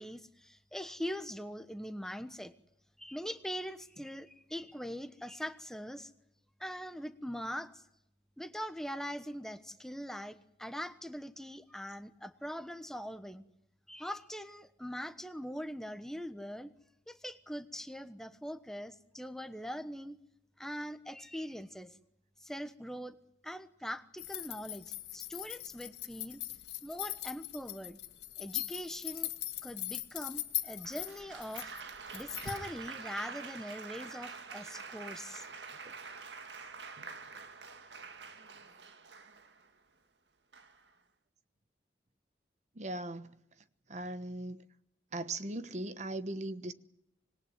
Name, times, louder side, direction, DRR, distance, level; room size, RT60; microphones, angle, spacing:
voice 1, 0.0-2.5 3.0-6.1 6.6-7.8 8.4-13.4 13.9-16.7 17.1-20.2 20.6-22.0 22.4-23.2 23.4-26.4 26.8-28.0 28.4-29.3 29.6-31.7 32.1-35.4, equal, 5° left, 1.1 m, -42 dB
sound 1, 24.2-32.7, left 14 dB, 80° left, 2.0 m, -40 dB
Applause, 30.8-39.7 40.5-40.9, right 5 dB, 85° right, 2.1 m, -47 dB
voice 2, 42.7-43.4 43.9-44.6 45.1-46.7, right 2 dB, 40° right, 1.2 m, -39 dB
26.0 x 20.5 x 9.5 m
head